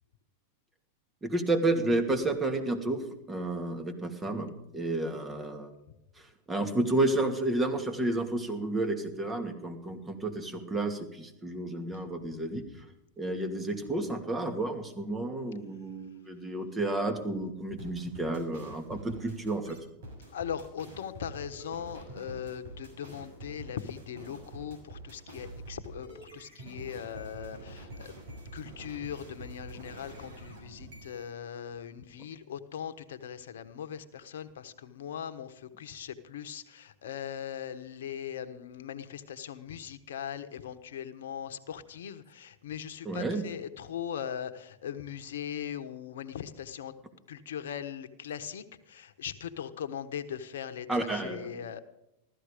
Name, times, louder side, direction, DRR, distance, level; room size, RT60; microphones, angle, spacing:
voice 1, 1.2-5.7 6.5-12.6 13.2-19.8 43.0-43.4 50.9-51.6, right 2 dB, 15° right, 6 dB, 2.5 m, -31 dB
sound 1, 17.8-31.3, right 1 dB, 70° right, 6.5 m, -46 dB
voice 2, 20.3-28.1 28.5-46.9 47.3-51.8, left 9 dB, 75° left, 9 dB, 1.3 m, -40 dB
15.5 x 13.5 x 5.1 m, 0.83 s
hypercardioid pair, 105°, 0 cm